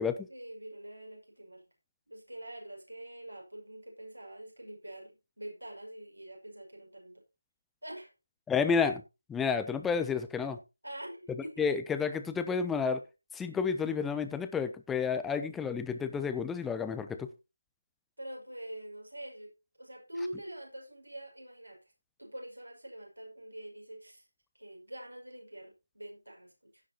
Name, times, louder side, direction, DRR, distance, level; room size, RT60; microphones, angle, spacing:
voice 1, 0.3-1.6 2.1-7.2 7.8-8.1 10.8-11.7 18.2-19.5 19.8-21.8 22.2-24.2 24.5-26.8, right 1 dB, 80° right, 2 dB, 6.1 m, -45 dB
voice 2, 8.5-9.0 9.3-10.6 11.6-13.0 13.3-17.3, left 6 dB, 5° left, 10 dB, 0.5 m, -30 dB
15.5 x 9.5 x 2.9 m, 0.26 s
figure-of-eight pair, 165°, 0 cm